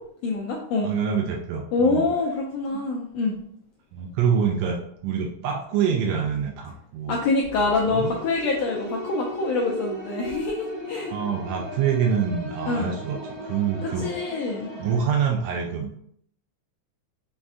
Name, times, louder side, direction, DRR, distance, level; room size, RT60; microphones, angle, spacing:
voice 1, 0.2-0.9 1.7-3.4 7.1-11.1 12.7-12.9 13.8-14.7, left 3 dB, 85° left, -1 dB, 1.4 m, -25 dB
voice 2, 0.8-2.1 3.9-7.2 7.8-8.1 11.1-14.1 14.8-16.0, right 7 dB, 80° right, 1 dB, 1.5 m, -26 dB
sound 1, 7.4-15.0, equal, 55° right, 1.4 m, -37 dB
5.1 x 2.4 x 3.6 m, 0.68 s
omnidirectional pair, 3.5 m